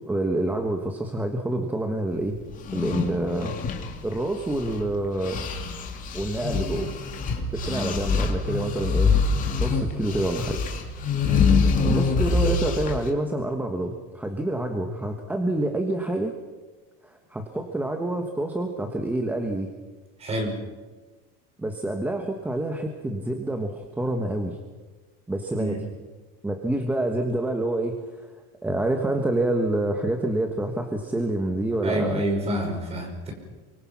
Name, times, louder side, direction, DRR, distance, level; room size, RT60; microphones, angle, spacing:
voice 1, 0.1-2.4 2.7-3.5 4.0-5.4 6.1-6.9 7.5-9.1 9.6-10.6 11.8-16.3 17.0-19.7 21.6-24.6 25.3-25.8 26.4-28.3 28.6-32.2, right 1 dB, 5° right, 3 dB, 1.4 m, -27 dB
sound 1, 2.5-4.9 5.2-13.1, left 4 dB, 30° left, 2.9 m, -25 dB
voice 2, 7.6-7.9 11.2-11.7 20.2-20.6 25.6-25.9 31.8-33.3, equal, 20° right, 3 dB, 5.5 m, -28 dB
27.5 x 24.5 x 6.0 m, 1.3 s
cardioid pair, 175°, 29 cm